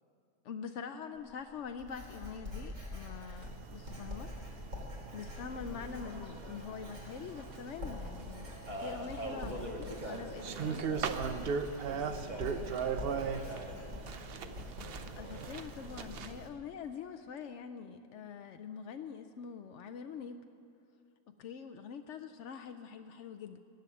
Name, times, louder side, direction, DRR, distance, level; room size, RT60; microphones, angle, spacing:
voice 1, 0.4-4.6 5.1-8.5 8.8-11.0 15.2-20.4 21.3-23.6, left 6 dB, 75° left, 7 dB, 0.6 m, -44 dB
Writing, 1.1-16.5, left 1 dB, 45° right, 3.5 m, -46 dB
sound 1, 3.4-16.5, right 6 dB, 85° right, 0.5 m, -40 dB
sound 2, 5.3-16.1, right 1 dB, 25° right, 1.6 m, -46 dB
voice 2, 10.3-14.6, left 2 dB, 30° left, 3 dB, 1.2 m, -59 dB
18.0 x 9.1 x 7.1 m, 2.6 s
omnidirectional pair, 1.9 m